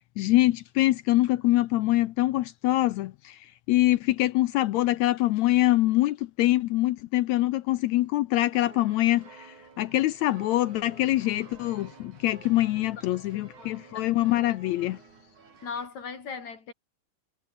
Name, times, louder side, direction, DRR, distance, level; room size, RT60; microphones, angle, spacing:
voice 1, 0.2-15.0, left 16 dB, 80° left, 1.6 m, -24 dB
sound 1, 8.5-15.9, right 5 dB, 60° right, 6.1 m, -51 dB
voice 2, 13.0-14.1 15.6-16.7, left 5 dB, 55° left, 5.0 m, -39 dB
omnidirectional pair, 3.9 m